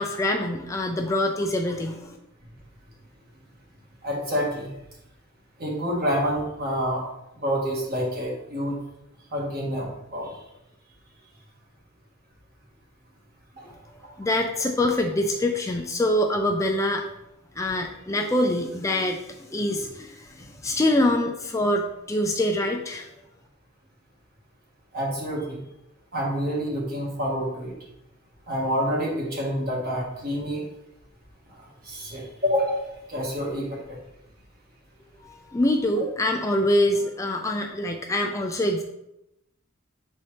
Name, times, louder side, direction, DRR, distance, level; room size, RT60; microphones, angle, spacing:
voice 1, 0.0-2.2 13.7-13.8 14.2-17.1 17.6-23.1 35.2-38.8, left 1 dB, 15° left, 3 dB, 0.4 m, -25 dB
voice 2, 4.0-4.7 5.6-7.0 7.4-8.8 9.3-10.3 13.6-13.7 24.9-25.6 26.1-27.7 28.5-30.6 31.8-34.0 36.0-36.1, equal, 45° right, -3 dB, 1.7 m, -28 dB
7.2 x 4.2 x 3.3 m, 0.86 s
head